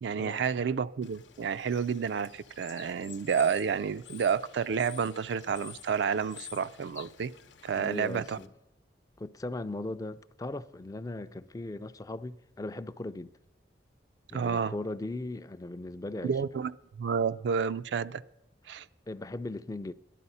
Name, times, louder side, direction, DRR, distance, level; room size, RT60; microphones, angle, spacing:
voice 1, 0.0-7.3 7.6-8.4 14.3-14.7 16.2-16.7 17.0-18.2 18.7-18.9, right 6 dB, 75° right, 0.4 m, -30 dB
Bird / Water, 1.0-8.5, left 9 dB, 90° left, 0.8 m, -51 dB
voice 2, 7.8-8.5 9.2-13.3 14.3-16.4 19.1-19.9, left 2 dB, 20° left, 0.3 m, -38 dB
14.0 x 11.0 x 5.5 m
head